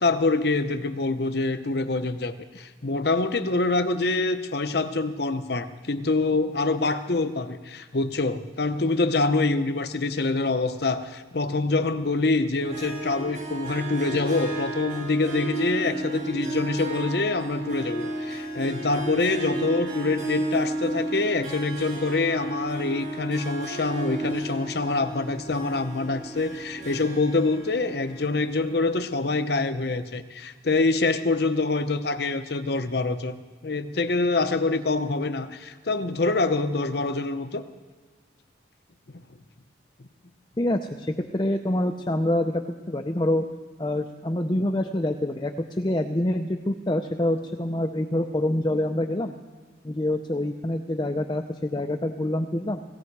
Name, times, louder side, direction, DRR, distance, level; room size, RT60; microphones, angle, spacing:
voice 1, 0.0-33.4 33.6-37.6 39.1-39.2, left 3 dB, 55° left, 10 dB, 0.8 m, -25 dB
Harp, 12.6-29.1, right 2 dB, 45° right, 4.1 m, -33 dB
voice 2, 40.6-41.1 41.3-42.6 42.9-43.5 43.8-49.4 49.8-52.8, left 1 dB, 25° left, 5 dB, 0.6 m, -26 dB
17.5 x 17.0 x 4.7 m, 1.5 s
head